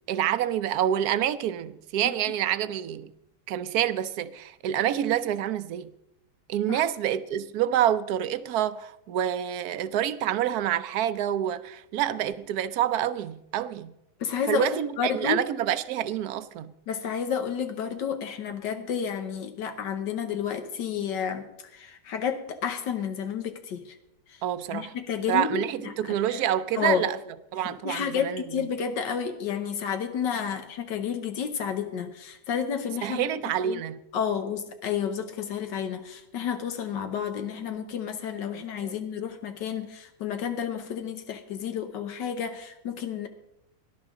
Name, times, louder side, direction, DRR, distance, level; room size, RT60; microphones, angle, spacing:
voice 1, 0.1-3.1 3.5-5.9 6.5-13.9 14.5-16.7 24.4-24.9 25.3-27.2 27.5-28.4 33.0-34.0 38.5-38.9, right 11 dB, 70° right, 1.1 m, -27 dB
voice 2, 14.2-15.4 16.9-24.0 24.3-24.4 24.7-25.9 26.3-26.4 26.8-27.0 27.7-33.3 33.6-33.8 34.1-43.3, left 7 dB, 85° left, 1.6 m, -31 dB
18.5 x 11.0 x 3.7 m
omnidirectional pair, 1.9 m